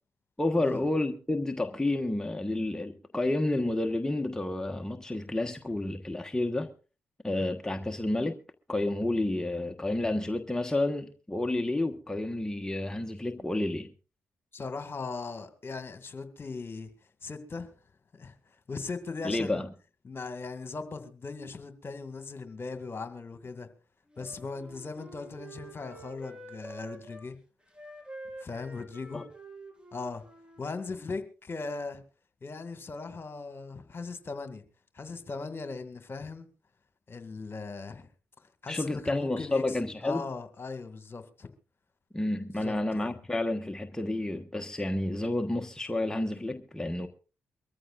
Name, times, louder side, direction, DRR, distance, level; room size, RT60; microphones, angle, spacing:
voice 1, 0.4-6.7 7.2-8.4 8.7-13.9 19.2-19.7 29.1-29.2 38.7-40.2 42.1-47.1, left 2 dB, 10° left, 1.3 m, -30 dB
voice 2, 14.5-16.9 17.2-17.7 18.1-18.3 18.7-19.6 20.0-23.7 24.2-27.3 28.4-29.2 29.9-30.2 30.6-32.0 32.4-34.6 34.9-36.5 37.1-38.1 38.6-39.6 40.0-41.5 42.6-43.1, left 4 dB, 40° left, 2.0 m, -39 dB
Wind instrument woodwind instrument, 24.1-27.3 27.7-31.1, right 1 dB, 15° right, 4.5 m, -47 dB
23.0 x 14.0 x 2.5 m
hypercardioid pair, 40°, 6 cm